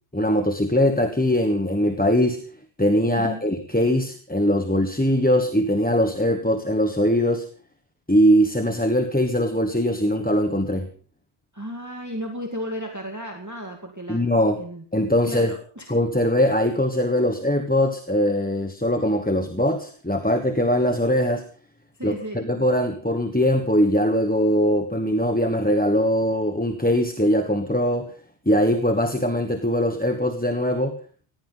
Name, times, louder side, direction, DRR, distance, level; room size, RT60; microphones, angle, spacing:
voice 1, 0.1-2.4 2.8-7.5 8.1-10.9 14.1-14.6 14.9-15.5 15.9-21.4 22.0-28.1 28.5-31.0, equal, 10° left, 6 dB, 1.2 m, -21 dB
voice 2, 3.1-3.4 11.5-14.2 14.6-14.8 15.2-15.9 21.9-22.4, equal, 15° right, 1 dB, 2.1 m, -34 dB
18.5 x 16.0 x 4.0 m, 0.41 s
omnidirectional pair, 1.2 m